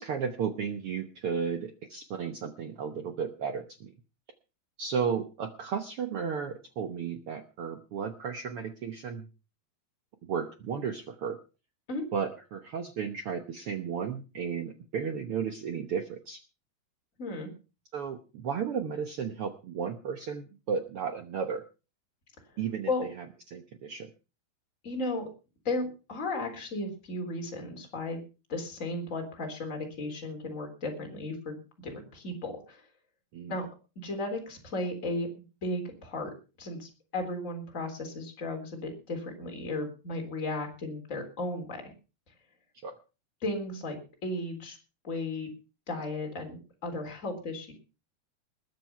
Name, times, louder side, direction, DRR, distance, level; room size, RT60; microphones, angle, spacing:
voice 1, 0.0-3.9 4.8-9.3 10.2-11.4 12.1-16.4 17.9-21.6 22.6-23.2 23.5-24.1 33.3-33.6 42.8-42.9, right 6 dB, 75° right, 7 dB, 1.3 m, -34 dB
voice 2, 17.2-17.5 22.5-22.6 22.9-23.0 24.8-25.3 25.6-28.2 28.5-32.9 33.5-33.7 34.0-35.3 35.6-41.8 42.3-42.4 43.4-44.8 45.0-45.5 45.9-47.7, left 2 dB, 20° left, 3 dB, 3.8 m, -35 dB
20.5 x 7.7 x 5.8 m, 0.34 s
omnidirectional pair, 4.1 m